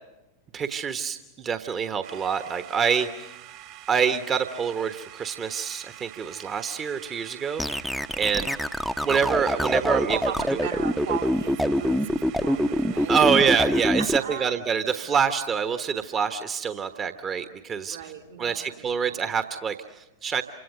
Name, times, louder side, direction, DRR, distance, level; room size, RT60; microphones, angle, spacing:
voice 1, 0.5-3.3 3.9-8.5 9.0-10.2 13.1-18.1 18.4-20.4, right 6 dB, 25° right, 9 dB, 1.2 m, -26 dB
sound 1, 2.0-13.6, right 13 dB, 45° right, 2.1 m, -46 dB
sound 2, 7.6-14.2, equal, ahead, 0.8 m, -25 dB
voice 2, 9.7-13.3 13.5-13.6 13.9-14.6 17.9-19.2, right 8 dB, 70° right, 1 dB, 3.1 m, -36 dB
28.0 x 25.5 x 6.7 m, 0.97 s
figure-of-eight pair, 90°, 0 cm